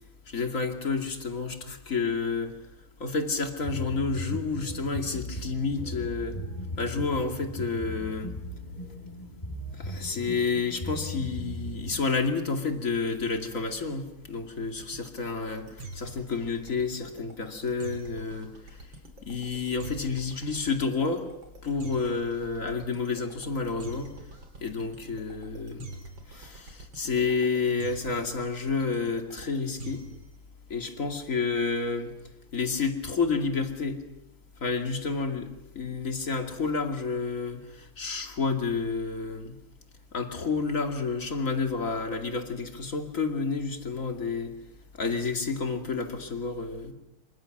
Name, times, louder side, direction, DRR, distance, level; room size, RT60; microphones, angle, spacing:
voice 1, 0.3-2.5 3.0-6.4 6.8-8.4 9.7-15.7 15.9-18.5 19.2-21.3 21.6-24.1 24.6-25.9 26.3-30.0 30.7-32.1 32.5-34.0 34.6-39.6 40.1-44.5 45.0-46.9, left 4 dB, 40° left, 4 dB, 2.8 m, -30 dB
sound 1, 3.6-11.9, equal, 20° left, 5.6 m, -37 dB
sound 2, 14.7-30.3, right 3 dB, 65° right, 3.9 m, -45 dB
27.5 x 26.0 x 6.5 m, 0.91 s
omnidirectional pair, 2.3 m